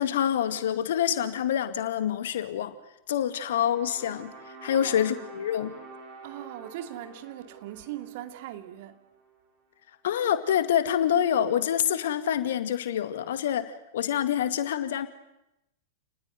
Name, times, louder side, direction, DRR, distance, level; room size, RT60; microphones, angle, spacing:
voice 1, 0.0-2.7 3.1-5.7 10.0-15.1, left 10 dB, 55° left, 2.1 m, -26 dB
C Space trumpet, 3.3-9.5, right 3 dB, 30° right, 7.4 m, -48 dB
voice 2, 4.7-5.1 6.2-9.0, right 13 dB, 45° right, 2.5 m, -40 dB
30.0 x 19.5 x 9.5 m
figure-of-eight pair, 95°, 0 cm